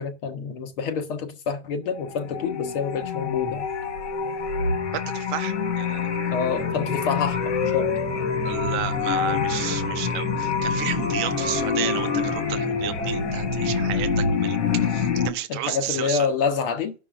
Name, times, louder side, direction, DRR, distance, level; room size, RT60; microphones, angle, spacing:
voice 1, 0.0-3.7 6.3-7.9 11.4-11.6 15.5-16.9, left 5 dB, 55° left, 1.4 m, -27 dB
sound 1, 2.0-15.3, left 5 dB, 85° left, 1.4 m, -26 dB
voice 2, 4.9-6.4 8.4-16.3, right 13 dB, 45° right, 0.7 m, -32 dB
sound 2, 6.4-14.4, equal, ahead, 0.7 m, -37 dB
15.0 x 5.4 x 2.5 m
supercardioid pair, 145°, 34 cm